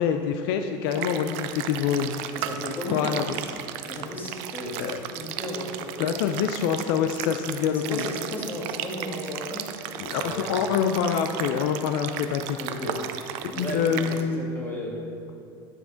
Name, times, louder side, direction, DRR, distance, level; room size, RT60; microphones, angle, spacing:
voice 1, 0.0-2.1 2.9-3.2 4.8-5.0 6.0-8.0 10.0-12.6 13.4-14.4, left 7 dB, 75° left, 6 dB, 0.4 m, -26 dB
sound 1, 0.9-14.2, right 10 dB, 65° right, 0.4 m, -35 dB
voice 2, 2.3-3.0 3.9-6.1 7.7-9.6 10.1-10.6 12.3-13.1 13.5-15.0, left 1 dB, 15° left, -3 dB, 1.6 m, -35 dB
9.5 x 3.4 x 5.0 m, 2.4 s
supercardioid pair, 125°, 12 cm